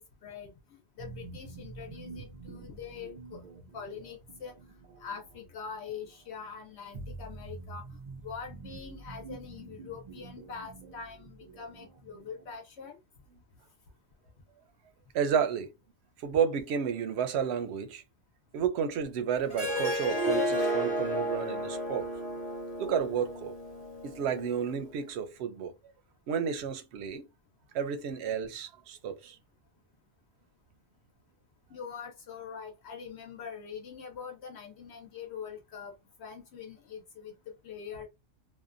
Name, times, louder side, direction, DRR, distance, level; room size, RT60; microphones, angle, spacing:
voice 1, 0.2-3.4 3.7-4.6 5.0-7.8 8.2-13.0 31.7-35.9 36.2-38.1, left 6 dB, 75° left, 0.9 m, -43 dB
sound 1, 1.0-12.6, right 3 dB, 55° right, 0.4 m, -47 dB
voice 2, 15.1-15.7 16.2-18.0 18.5-22.1 22.8-23.5 24.0-25.7 26.3-27.2 27.7-29.4, right 7 dB, 75° right, 0.8 m, -31 dB
Harp, 19.5-24.7, equal, 35° left, 0.9 m, -32 dB
2.7 x 2.1 x 2.4 m
omnidirectional pair, 1.1 m